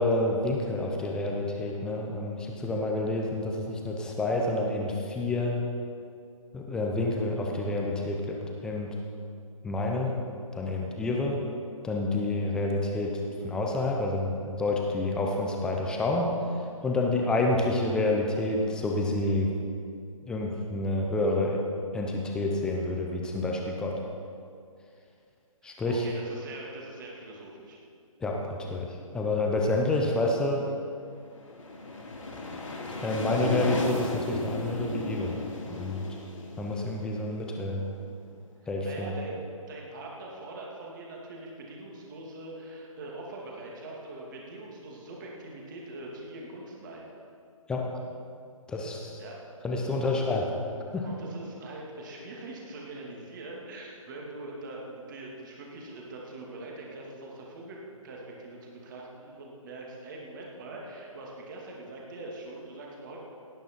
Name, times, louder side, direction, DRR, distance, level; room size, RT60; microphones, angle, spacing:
voice 1, 0.0-5.6 6.5-9.0 9.6-10.2 10.5-11.4 11.8-16.3 16.8-19.5 20.3-21.6 21.9-24.0 25.6-26.1 28.2-30.7 33.0-35.4 35.7-36.1 36.6-37.9 38.7-39.1 47.7-47.9 48.7-49.2 49.6-50.4 50.9-51.1, left 2 dB, 5° left, 0 dB, 0.7 m, -28 dB
voice 2, 25.7-27.8 38.8-47.1 49.2-49.4 49.9-50.3 51.0-63.2, right 2 dB, 35° right, -2 dB, 2.4 m, -43 dB
sound 1, 31.2-37.9, left 2 dB, 65° left, 2.7 m, -35 dB
16.5 x 9.1 x 4.5 m, 2.4 s
figure-of-eight pair, 150°, 18 cm